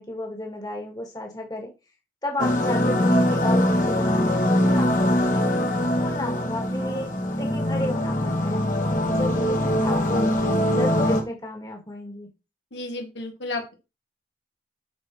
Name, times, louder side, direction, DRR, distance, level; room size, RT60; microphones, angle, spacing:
voice 1, 0.0-1.7 2.2-5.5 5.9-7.1 7.4-10.3 10.7-12.3, left 1 dB, 20° left, 1 dB, 1.7 m, -33 dB
sound 1, 2.4-11.2, left 1 dB, 45° left, 1.5 m, -22 dB
voice 2, 12.7-13.7, left 2 dB, 85° left, 2 dB, 2.2 m, -32 dB
12.5 x 4.6 x 3.0 m, 0.27 s
head